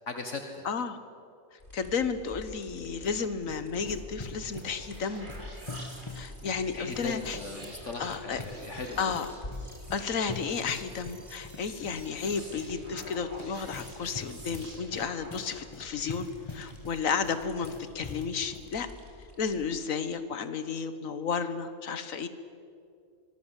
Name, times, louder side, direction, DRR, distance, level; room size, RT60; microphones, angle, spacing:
voice 1, 0.1-0.7 6.7-9.2, left 3 dB, 65° left, 5 dB, 1.9 m, -38 dB
voice 2, 0.6-1.0 1.7-5.3 6.1-7.4 8.0-8.4 9.0-9.3 9.9-18.9 19.4-22.3, left 6 dB, 80° left, 11 dB, 1.7 m, -32 dB
sound 1, 1.6-19.7, left 1 dB, 40° left, 4.4 m, -49 dB
sound 2, 2.8-18.7, left 2 dB, 20° left, 2.1 m, -45 dB
sound 3, 4.3-15.8, right 1 dB, 35° right, 3.3 m, -49 dB
25.5 x 20.0 x 8.2 m, 2.4 s
omnidirectional pair, 1.4 m